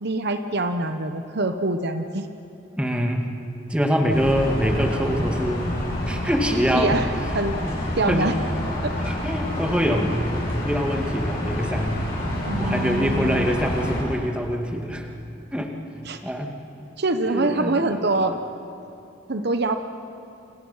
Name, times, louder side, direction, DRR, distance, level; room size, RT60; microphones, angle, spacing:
voice 1, 0.0-2.3 6.7-7.1 7.3-7.6 8.0-8.3 8.8-8.9 12.4-13.5 16.1-16.2 17.0-18.4 19.3-19.8, right 2 dB, 55° right, 8 dB, 1.0 m, -24 dB
voice 2, 2.7-3.3 3.7-5.7 6.0-7.0 7.6-7.8 8.1-8.3 9.0-12.1 12.6-15.1 15.5-15.7 16.2-16.5 17.2-18.4, equal, 5° right, 2 dB, 2.1 m, -24 dB
sound 1, 4.1-14.0, left 1 dB, 50° left, 7.5 m, -28 dB
29.0 x 26.5 x 5.7 m, 2.9 s
head